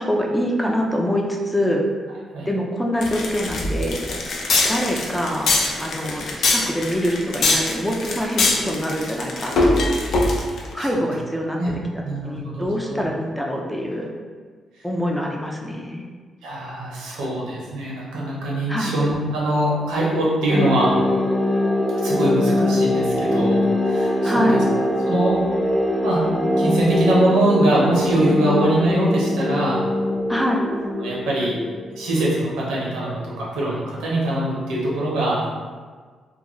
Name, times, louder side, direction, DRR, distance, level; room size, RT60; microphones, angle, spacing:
voice 1, 0.0-1.9 2.5-4.0 4.7-9.9 10.7-11.6 12.2-14.1 14.8-16.1 18.7-19.0 24.2-24.7 30.3-30.7, equal, 5° left, 0 dB, 0.4 m, -24 dB
sound 1, 3.0-10.7, left 2 dB, 70° left, 0.4 m, -22 dB
voice 2, 12.0-13.0 16.4-20.9 21.9-23.6 23.9-24.5 25.1-25.4 26.0-26.2 26.6-29.8 31.0-31.6 32.0-35.4, right 1 dB, 85° right, -5 dB, 0.7 m, -22 dB
sound 2, 20.5-32.3, left 1 dB, 25° left, 0.9 m, -22 dB
2.3 x 2.2 x 3.0 m, 1.5 s
supercardioid pair, 55°, 0 cm